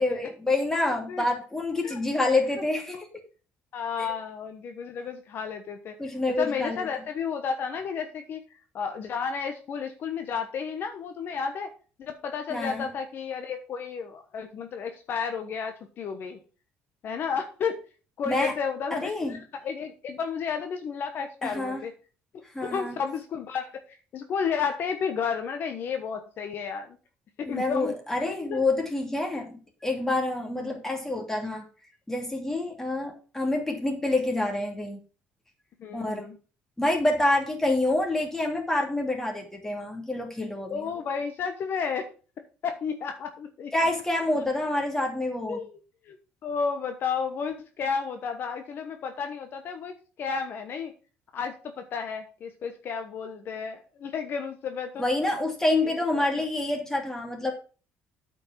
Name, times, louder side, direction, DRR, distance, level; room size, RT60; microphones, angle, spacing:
voice 1, 0.0-3.0 6.0-6.9 12.5-12.9 18.3-18.5 18.9-19.3 21.4-21.8 22.5-23.0 27.4-31.6 32.1-35.0 35.9-36.3 36.8-40.9 43.7-45.6 55.0-57.5, left 2 dB, 10° left, 1 dB, 2.6 m, -27 dB
voice 2, 3.7-5.9 6.4-8.4 8.7-11.7 12.0-16.4 17.0-17.8 18.2-21.9 22.3-23.7 24.1-27.0 27.4-27.9 28.5-28.6 30.5-30.8 35.8-36.4 40.7-42.1 42.6-43.7 45.5-45.8 46.0-46.2 46.4-50.9 51.3-55.1 55.8-56.2, left 6 dB, 55° left, 7 dB, 1.1 m, -32 dB
8.9 x 5.2 x 5.7 m, 0.36 s
cardioid pair, 110°, 4 cm